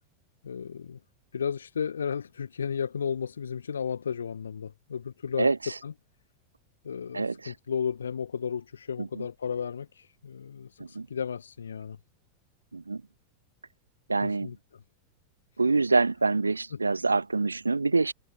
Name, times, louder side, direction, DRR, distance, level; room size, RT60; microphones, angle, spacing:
voice 1, 0.4-1.0 1.3-5.5 5.8-5.9 6.8-12.0 14.2-14.8 16.7-16.8, left 7 dB, 70° left, 1.3 m, -34 dB
voice 2, 5.4-5.7 7.1-7.5 9.0-9.3 10.8-11.1 12.7-13.0 14.1-14.5 15.6-18.1, right 3 dB, 80° right, 1.2 m, -26 dB
figure-of-eight pair, 90°, 0 cm